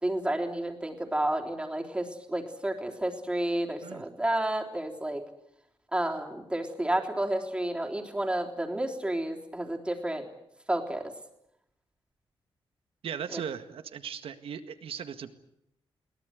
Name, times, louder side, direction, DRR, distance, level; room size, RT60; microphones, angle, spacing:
voice 1, 0.0-5.2 5.9-10.3 10.7-11.1 13.3-13.4, right 1 dB, 10° right, 2 dB, 3.6 m, -31 dB
voice 2, 13.0-15.3, right 8 dB, 80° right, 10 dB, 1.8 m, -38 dB
22.0 x 18.0 x 9.5 m, 0.79 s
cardioid pair, 100°, 9 cm